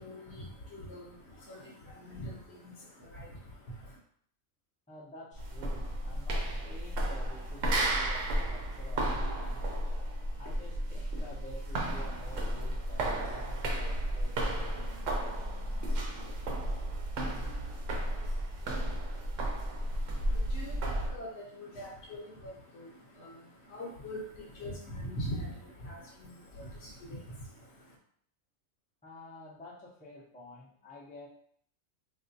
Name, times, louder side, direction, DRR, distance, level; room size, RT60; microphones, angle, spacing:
voice 1, 0.0-4.0 19.7-28.0, equal, 60° left, -2 dB, 0.9 m, -43 dB
voice 2, 4.9-9.9 10.4-16.9 29.0-31.3, left 1 dB, 10° left, -6 dB, 0.4 m, -51 dB
sound 1, 5.3-21.2, right 1 dB, 70° right, 1.0 m, -33 dB
3.4 x 2.4 x 2.6 m, 0.64 s
omnidirectional pair, 1.4 m